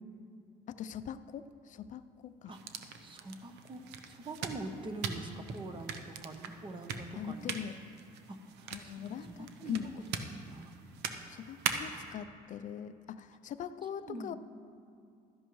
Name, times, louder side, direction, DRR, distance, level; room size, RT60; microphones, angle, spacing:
voice 1, 0.7-2.5 7.2-7.8 8.7-9.9 11.3-14.3, left 8 dB, 50° left, 12 dB, 0.4 m, -41 dB
sound 1, 2.5-12.1, right 6 dB, 85° right, 0.7 m, -42 dB
voice 2, 3.0-7.5 8.3-9.9 10.3-10.7 14.1-14.4, right 2 dB, 30° right, 6 dB, 0.9 m, -44 dB
12.5 x 10.5 x 3.1 m, 2.4 s
cardioid pair, 110°, 17 cm